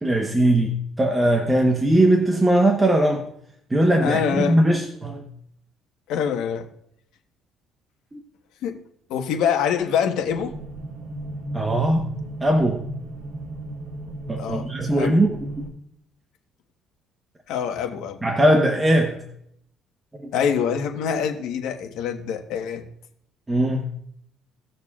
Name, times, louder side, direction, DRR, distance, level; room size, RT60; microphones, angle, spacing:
voice 1, 0.0-3.3 3.7-5.2 8.1-8.2 11.5-12.1 12.4-12.9 14.3-15.4 18.2-19.2 20.2-20.3 23.5-23.8, right 1 dB, 15° right, 1.0 m, -20 dB
voice 2, 4.0-4.6 6.1-6.7 8.6-8.8 9.1-10.6 14.4-14.7 15.0-15.2 17.5-18.2 20.3-22.8, left 7 dB, 80° left, 1.2 m, -25 dB
sound 1, 10.3-15.7, right 1 dB, 65° right, 2.8 m, -35 dB
18.0 x 6.6 x 2.4 m
cardioid pair, 125°, 0 cm